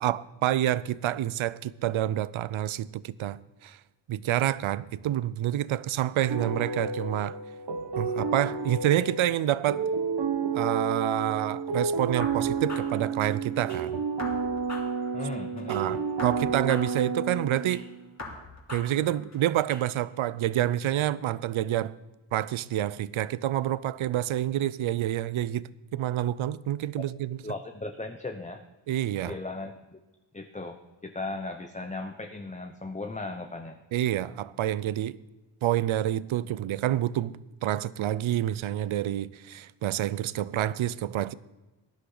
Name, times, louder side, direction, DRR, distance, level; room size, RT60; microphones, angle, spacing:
voice 1, 0.0-3.8 4.1-7.4 8.0-9.8 10.5-14.0 15.7-17.9 18.7-21.9 22.3-25.6 25.9-27.4 28.9-29.3 33.9-35.2 35.6-41.3, right 12 dB, 85° right, 0.6 m, -28 dB
sound 1, 6.3-18.0, right 5 dB, 60° right, 1.2 m, -31 dB
sound 2, 12.2-13.8 14.2-15.8 16.2-17.8 18.2-19.8, left 2 dB, 35° left, 3.1 m, -42 dB
voice 2, 15.1-16.0 27.4-28.6 29.2-30.0 30.3-30.8 31.0-33.8, left 2 dB, 15° left, 0.7 m, -37 dB
17.5 x 11.5 x 4.0 m
wide cardioid pair, 100°, 46 cm